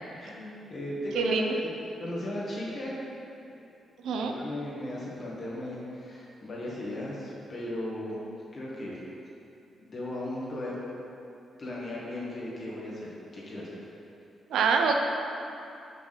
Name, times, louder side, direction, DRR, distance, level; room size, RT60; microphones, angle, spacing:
voice 1, 0.2-1.7 2.0-3.0 3.5-3.6 4.1-8.2 8.5-9.0 9.8-10.8 11.6-13.8, left 1 dB, 35° left, -6 dB, 1.8 m, -36 dB
voice 2, 1.1-1.5 4.0-4.3 14.5-14.9, right 5 dB, 90° right, 3 dB, 0.7 m, -25 dB
5.9 x 5.9 x 5.9 m, 2.7 s
wide cardioid pair, 155°, 0 cm